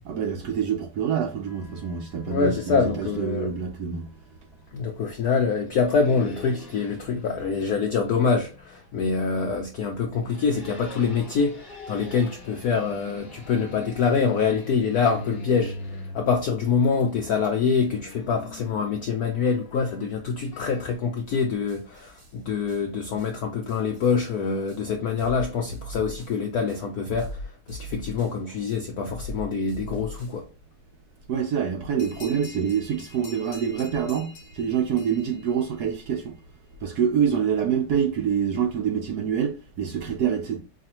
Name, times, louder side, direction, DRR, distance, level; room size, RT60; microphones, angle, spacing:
voice 1, 0.0-4.1 31.3-36.4 36.8-40.6, right 7 dB, 70° right, 0.9 m, -26 dB
sound 1, 1.4-20.9, left 1 dB, 25° left, 1.0 m, -44 dB
voice 2, 2.3-3.5 4.7-27.4 27.7-30.5, left 5 dB, 85° left, 0.8 m, -25 dB
sound 2, 21.3-21.4 21.7-22.3 22.7-22.8 23.2-23.3 23.7-24.3 24.7-24.8 25.2-26.4 26.7-28.4 28.7-30.4, left 1 dB, 35° right, 0.9 m, -39 dB
sound 3, 32.0-36.2, left 2 dB, 45° left, 1.1 m, -47 dB
4.9 x 2.5 x 2.9 m
omnidirectional pair, 2.3 m